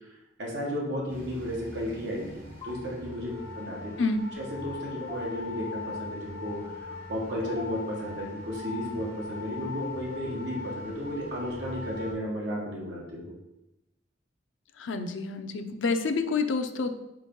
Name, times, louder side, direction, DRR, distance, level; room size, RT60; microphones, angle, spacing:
voice 1, 0.4-3.9 4.4-13.3, equal, 65° right, -3 dB, 1.6 m, -34 dB
sound 1, 1.1-12.1, left 3 dB, 15° right, 1.7 m, -41 dB
sound 2, 2.6-2.8 5.0-5.2 7.4-7.6 9.8-10.2, left 2 dB, 25° left, 0.9 m, -41 dB
voice 2, 14.8-17.0, left 4 dB, 85° left, 7 dB, 0.5 m, -28 dB
4.5 x 3.9 x 5.3 m, 0.93 s
head